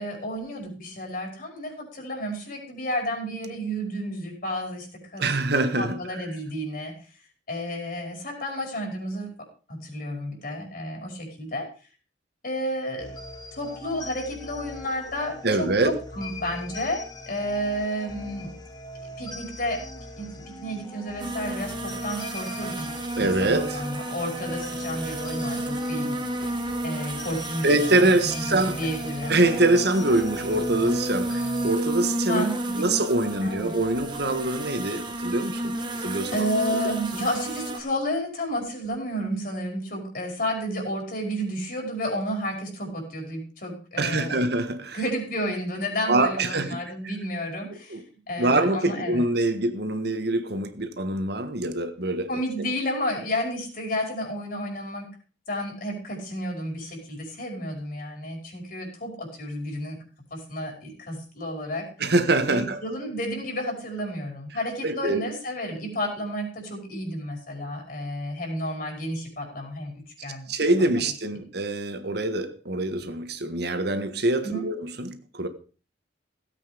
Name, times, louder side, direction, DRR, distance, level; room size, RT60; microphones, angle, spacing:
voice 1, 0.0-4.9 5.1-5.2 5.8-6.9 7.5-9.3 9.7-11.7 12.4-13.1 13.6-18.6 19.2-19.8 20.2-26.5 26.8-29.4 32.3-32.8 33.4-33.7 36.3-44.4 44.9-49.3 52.3-55.1 55.5-60.0 60.3-61.9 62.5-70.5 70.8-70.9 74.4-74.7, equal, 50° left, 5.3 m, -31 dB
voice 2, 5.2-6.0 15.4-16.0 23.2-23.8 27.6-28.8 29.3-32.4 32.8-35.7 36.0-36.8 44.0-45.0 46.1-46.8 47.9-48.0 48.4-52.3 62.0-62.8 64.8-65.2 70.5-75.5, right 2 dB, 60° right, 1.6 m, -24 dB
sound 1, 13.0-31.7, left 1 dB, 25° left, 1.6 m, -41 dB
sound 2, 21.2-37.8, right 1 dB, 25° right, 1.8 m, -31 dB
17.0 x 8.4 x 5.1 m
head